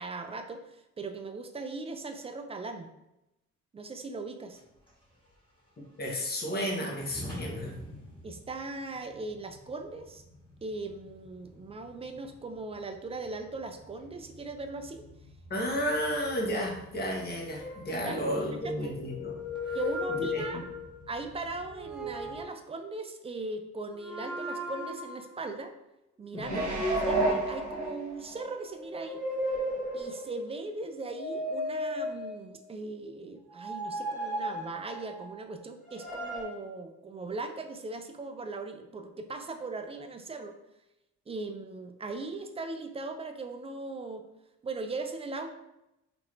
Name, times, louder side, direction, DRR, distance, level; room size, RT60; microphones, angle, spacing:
voice 1, 0.0-2.9 3.7-4.6 8.2-10.2 10.6-15.1 18.0-18.3 19.7-20.6 21.1-25.7 26.2-26.8 27.0-29.2 29.9-40.6 41.3-44.2 44.6-45.6, right 3 dB, 20° right, 6 dB, 0.4 m, -39 dB
sound 1, 4.5-22.4, left 1 dB, 15° left, 1.5 m, -50 dB
voice 2, 6.0-7.7 15.5-19.4 19.6-19.8 20.3-20.6 26.3-26.6, equal, 30° left, -1 dB, 0.9 m, -32 dB
sound 2, 17.6-18.5 19.0-21.0 21.6-22.6 23.9-25.3 26.5-28.2 28.7-30.4 31.0-32.6 33.5-35.3 35.9-36.4, left 1 dB, 5° right, 1.4 m, -35 dB
sound 3, 26.4-28.4 28.9-29.0, right 2 dB, 70° right, 0.8 m, -30 dB
3.0 x 2.5 x 3.1 m, 0.89 s
cardioid pair, 90°, 30 cm